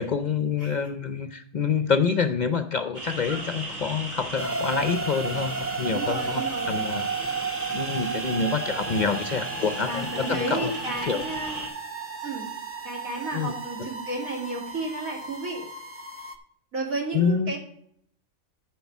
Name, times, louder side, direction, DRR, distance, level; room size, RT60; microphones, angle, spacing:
voice 1, 0.0-7.3 7.7-10.7 11.0-11.2 13.3-13.5 13.8-13.9 17.1-17.6, left 5 dB, 55° left, 9 dB, 0.5 m, -27 dB
sound 1, 2.9-11.7, right 2 dB, 70° right, 2.3 m, -36 dB
sound 2, 4.4-16.4, right 4 dB, 15° right, 0.5 m, -34 dB
voice 2, 5.9-6.9 9.8-11.6 12.2-12.5 12.8-15.7 16.7-17.6, right 2 dB, 90° right, -1 dB, 2.7 m, -32 dB
9.2 x 4.6 x 7.1 m, 0.66 s
omnidirectional pair, 1.4 m